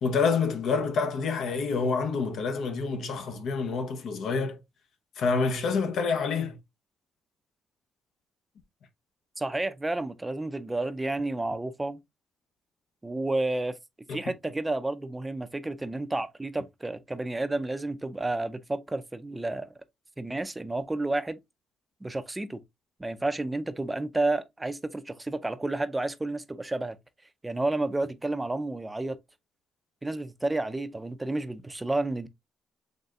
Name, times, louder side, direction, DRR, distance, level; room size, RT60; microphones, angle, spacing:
voice 1, 0.0-4.6 5.2-6.6 14.1-14.2, left 4 dB, 70° left, 0.8 m, -27 dB
voice 2, 9.4-12.0 13.0-13.8 14.1-19.7 20.2-21.4 22.0-22.6 23.0-27.0 27.4-29.2 30.0-32.3, right 2 dB, 15° right, 0.4 m, -31 dB
4.0 x 3.2 x 2.3 m
cardioid pair, 90°, 0 cm